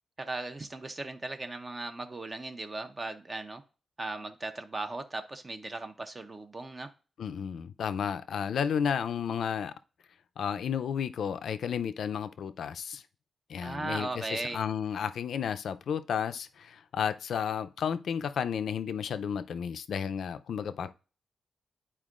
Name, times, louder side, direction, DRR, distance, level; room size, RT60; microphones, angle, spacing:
voice 1, 0.2-3.6 4.0-6.9 13.6-14.6, right 2 dB, 25° right, 0.6 m, -37 dB
voice 2, 7.2-9.7 10.4-13.0 13.5-20.9, left 7 dB, 75° left, 0.5 m, -32 dB
11.0 x 4.4 x 2.4 m
wide cardioid pair, 155°, 0 cm